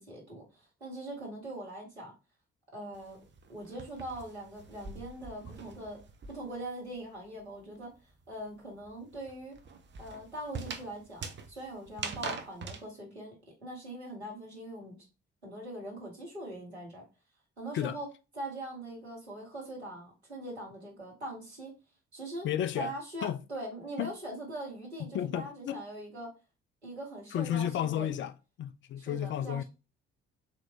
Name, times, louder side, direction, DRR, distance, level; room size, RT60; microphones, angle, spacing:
voice 1, 0.0-2.1 2.7-3.2 3.5-6.0 6.3-7.9 8.3-9.5 10.0-13.4 13.6-14.9 15.4-17.0 17.6-18.1 18.3-21.7 22.1-22.5 22.7-26.3 26.8-28.1 29.0-29.6, right 1 dB, 90° right, 1.3 m, -42 dB
sound 1, 2.9-6.7 7.0-12.8, right 5 dB, 35° right, 0.8 m, -43 dB
voice 2, 22.4-22.9 23.2-23.4 24.0-24.1 25.1-25.8 27.3-28.3 28.6-29.6, left 10 dB, 40° left, 0.4 m, -32 dB
4.1 x 3.0 x 2.8 m
figure-of-eight pair, 45°, 32 cm